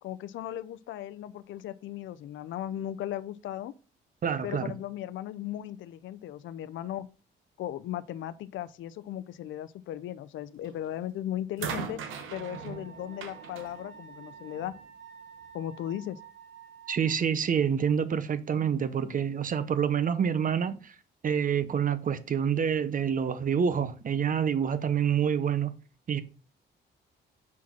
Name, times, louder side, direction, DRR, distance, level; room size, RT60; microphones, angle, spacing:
voice 1, 0.0-3.7 4.4-7.1 7.6-12.0 12.3-14.8 15.5-16.2, left 12 dB, 75° left, 0.5 m, -37 dB
voice 2, 4.2-4.7 16.9-20.9 21.2-25.8 26.1-26.2, right 7 dB, 45° right, 0.8 m, -27 dB
sound 1, 10.6-11.0 11.6-14.8 15.9-16.0, right 6 dB, 90° right, 1.1 m, -40 dB
Wind instrument woodwind instrument, 12.3-17.2, right 7 dB, 65° right, 3.2 m, -50 dB
6.0 x 4.7 x 5.8 m
cardioid pair, 90°, 20 cm